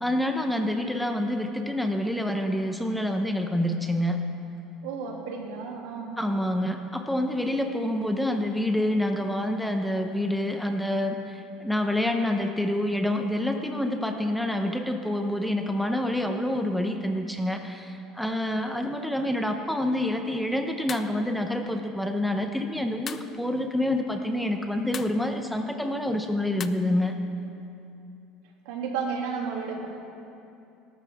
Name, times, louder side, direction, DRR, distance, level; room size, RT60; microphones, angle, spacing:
voice 1, 0.0-4.2 6.2-27.1, left 1 dB, ahead, 5 dB, 1.0 m, -27 dB
voice 2, 4.8-6.2 28.6-29.9, right 5 dB, 85° right, -1 dB, 2.8 m, -32 dB
sound 1, 20.9-21.1 23.1-23.4 24.9-25.2 26.6-26.7, left 7 dB, 35° left, 0.6 m, -37 dB
23.5 x 13.0 x 3.7 m, 2.7 s
supercardioid pair, 125°, 0 cm